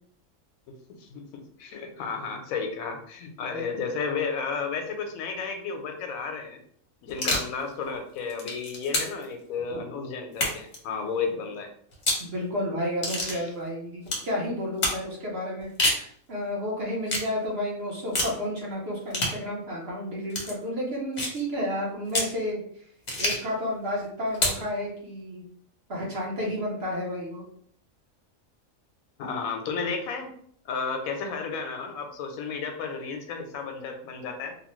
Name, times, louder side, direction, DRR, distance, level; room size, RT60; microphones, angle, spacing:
voice 1, 1.0-6.6 7.0-11.7 13.0-13.5 29.2-30.3 30.6-34.5, left 5 dB, 85° left, 5 dB, 1.0 m, -33 dB
voice 2, 3.5-3.8 9.7-9.8 12.2-22.6 23.2-25.4 25.9-27.4, left 1 dB, 50° right, -3 dB, 1.0 m, -31 dB
sound 1, 7.1-7.5 8.2-9.2 10.3-10.8 11.9-12.3 13.0-13.4 14.1-14.3 14.8-15.0 15.6-16.1 17.1-17.3 18.1-18.4 19.1-19.4 20.3-20.5 21.2-21.4 22.1-22.3 23.1-23.5 24.3-24.6, left 1 dB, 40° left, 0.7 m, -27 dB
2.9 x 2.1 x 3.0 m, 0.62 s
omnidirectional pair, 1.4 m